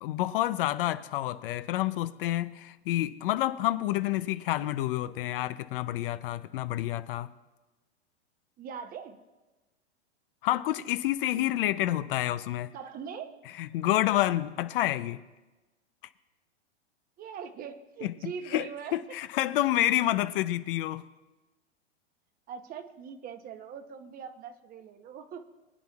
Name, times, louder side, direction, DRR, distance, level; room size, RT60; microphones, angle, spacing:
voice 1, 0.0-7.3 10.4-12.7 13.6-15.2 18.0-18.7 18.9-21.1, left 14 dB, 50° left, 13 dB, 0.6 m, -29 dB
voice 2, 8.6-9.2 12.7-13.4 17.2-19.0 22.5-25.4, right 7 dB, 25° right, 9 dB, 0.9 m, -41 dB
23.5 x 9.4 x 2.4 m, 1.1 s
hypercardioid pair, 125°, 35 cm